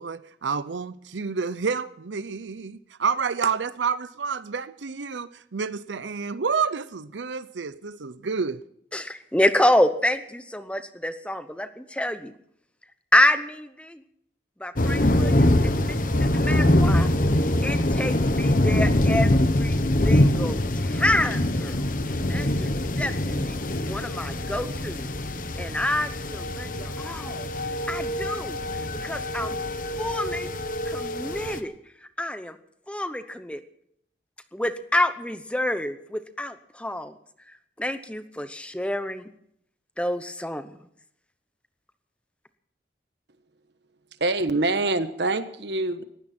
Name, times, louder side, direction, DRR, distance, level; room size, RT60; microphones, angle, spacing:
voice 1, 0.0-8.6, right 5 dB, 90° right, 0.7 m, -29 dB
voice 2, 8.9-12.3 13.1-14.0 14.6-17.1 17.6-21.8 22.3-22.7 23.0-23.6 23.9-25.1 25.6-27.5 27.9-29.6 30.0-30.5 30.8-31.7 32.2-32.6 32.9-33.6 34.5-37.1 37.8-39.3 40.0-40.8, left 1 dB, 5° left, 0.9 m, -27 dB
sound 1, 14.8-31.6, left 1 dB, 50° left, 1.1 m, -24 dB
voice 3, 44.2-46.1, right 2 dB, 70° right, 1.3 m, -25 dB
20.0 x 16.0 x 4.4 m
head